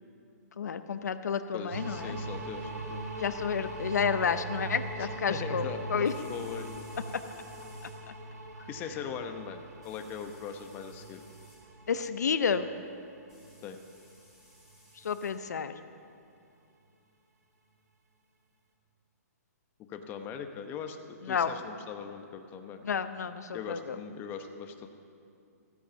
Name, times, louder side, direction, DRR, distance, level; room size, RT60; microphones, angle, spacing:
voice 1, 0.6-2.2 3.2-6.1 11.9-12.7 15.0-15.7 21.3-21.5 22.8-24.0, left 6 dB, 80° left, 11 dB, 0.7 m, -30 dB
voice 2, 1.5-3.0 5.0-6.7 8.7-11.2 13.6-13.8 19.8-22.8 23.5-24.9, left 7 dB, 20° left, 6 dB, 0.9 m, -40 dB
sound 1, 1.7-14.2, right 2 dB, 85° right, 2.3 m, -41 dB
sound 2, 2.6-2.7 6.0-7.9 9.8-11.6 13.3-15.3, equal, 5° right, 4.2 m, -59 dB
14.5 x 10.0 x 7.0 m, 2.5 s
hypercardioid pair, 150°, 9 cm